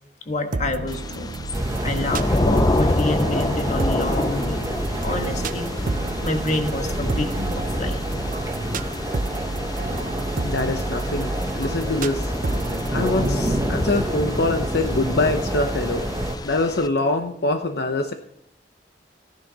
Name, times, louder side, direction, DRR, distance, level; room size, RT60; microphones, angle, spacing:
voice 1, 0.3-1.3 1.8-4.6 5.0-5.7 6.2-8.0, left 2 dB, 45° left, 6 dB, 1.5 m, -28 dB
sound 1, 0.5-13.7, right 3 dB, 50° right, 0.6 m, -31 dB
Thunder / Rain, 0.9-16.9, left 2 dB, 25° left, 0.6 m, -29 dB
sound 2, 1.5-16.4, right 1 dB, 20° right, 1.3 m, -28 dB
voice 2, 10.4-12.3 12.9-16.0 16.4-18.1, left 2 dB, 65° left, 6 dB, 0.9 m, -24 dB
15.0 x 10.5 x 4.0 m, 0.77 s
head